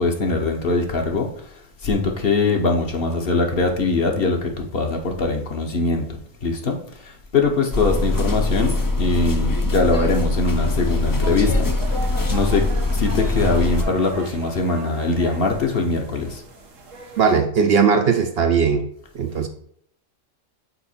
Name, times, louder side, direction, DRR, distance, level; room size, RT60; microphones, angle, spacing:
voice 1, 0.0-1.5 1.8-16.4, left 3 dB, 50° left, 3 dB, 1.0 m, -22 dB
sound 1, 7.7-13.8, left 2 dB, 35° left, 0.3 m, -22 dB
sound 2, 10.3-17.4, right 4 dB, 90° right, 1.2 m, -39 dB
voice 2, 17.2-18.9 19.1-19.5, right 6 dB, 65° right, 6 dB, 0.7 m, -18 dB
5.6 x 4.4 x 4.2 m, 0.68 s
omnidirectional pair, 1.3 m